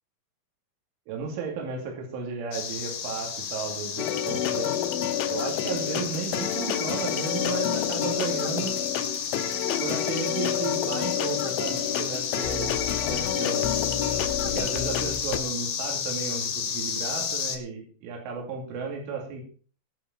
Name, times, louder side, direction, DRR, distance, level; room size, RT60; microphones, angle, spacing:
voice 1, 1.1-4.8 5.3-8.8 9.8-12.8 13.1-13.7 14.4-19.4, right 5 dB, 75° right, 1 dB, 5.1 m, -34 dB
sound 1, 2.5-17.6, left 7 dB, 60° left, 3.2 m, -32 dB
sound 2, 4.0-15.4, left 10 dB, 80° left, 3.1 m, -29 dB
20.5 x 7.2 x 4.3 m, 0.41 s
omnidirectional pair, 5.7 m